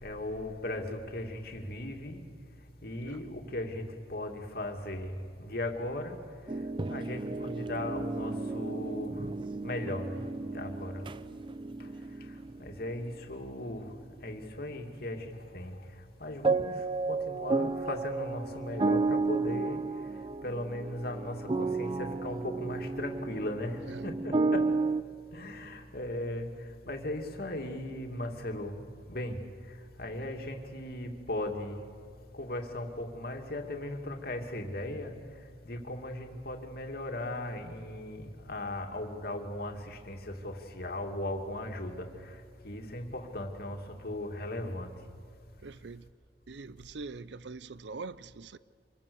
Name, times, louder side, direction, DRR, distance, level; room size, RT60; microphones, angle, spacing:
voice 1, 0.0-2.2 2.8-6.2 6.9-9.1 9.6-10.2 10.5-11.0 12.6-13.8 14.2-15.7 16.2-16.7 17.1-19.8 20.4-24.7 25.3-26.4 26.9-28.8 29.1-29.4 30.0-31.8 32.4-35.1 35.6-42.1 42.6-43.8 44.0-44.9, left 1 dB, 60° left, 2.5 m, -37 dB
sound 1, 6.5-12.8 16.4-25.0, right 3 dB, 30° right, 0.6 m, -32 dB
voice 2, 45.6-46.0 46.5-48.6, right 4 dB, 75° right, 0.6 m, -43 dB
26.5 x 22.5 x 7.1 m
head